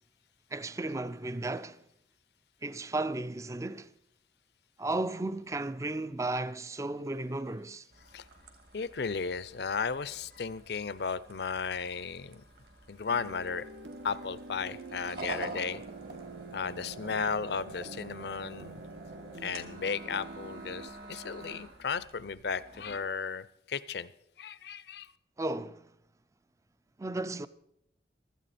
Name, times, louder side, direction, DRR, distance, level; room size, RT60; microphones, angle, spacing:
voice 1, 0.5-1.8 2.6-3.9 4.8-7.9 25.4-25.9 27.0-27.5, right 2 dB, 15° right, 0.4 m, -34 dB
sound 1, 7.9-23.0, right 2 dB, 55° right, 2.1 m, -48 dB
voice 2, 8.7-12.4 12.9-13.7 14.0-15.8 16.5-18.8 19.4-24.1 24.4-25.1, left 5 dB, 60° left, 0.5 m, -35 dB
sound 2, 13.1-20.9, right 2 dB, 85° right, 1.3 m, -46 dB
16.5 x 13.0 x 4.2 m
head